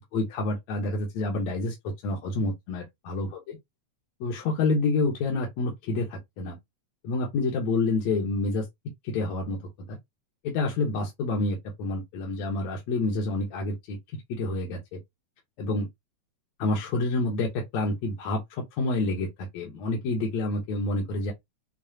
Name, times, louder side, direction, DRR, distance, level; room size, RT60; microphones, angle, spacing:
voice 1, 0.1-3.3 4.2-6.6 7.0-8.7 9.0-10.0 10.4-14.0 14.3-15.0 15.6-15.9 16.6-21.3, left 2 dB, 65° left, 2.4 m, -28 dB
7.1 x 2.4 x 2.8 m
omnidirectional pair, 3.5 m